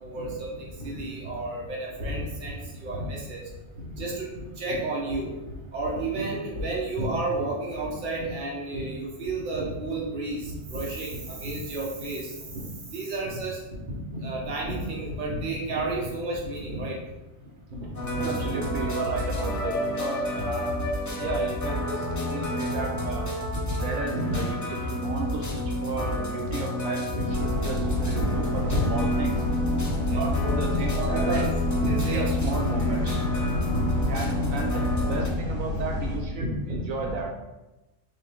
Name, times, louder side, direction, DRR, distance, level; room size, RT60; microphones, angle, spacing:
voice 1, 0.0-3.4 4.0-4.3 4.6-5.3 5.7-12.6 12.9-13.6 13.9-17.0 17.7-17.9 18.2-18.6 23.5-23.8 24.1-24.4 27.9-29.0 29.9-30.3 30.9-32.8 33.6-33.9 36.7-37.1, right 2 dB, 40° right, -3 dB, 1.0 m, -31 dB
sound 1, 17.9-35.3, left 1 dB, 25° left, 0.4 m, -29 dB
voice 2, 18.2-20.7 21.1-23.2 23.7-29.4 30.1-31.4 32.1-33.2 34.1-37.3, right 4 dB, 75° right, 1 dB, 0.9 m, -34 dB
sound 2, 27.3-36.2, left 2 dB, 25° right, 0.9 m, -29 dB
4.0 x 3.2 x 3.5 m, 1.0 s
omnidirectional pair, 1.4 m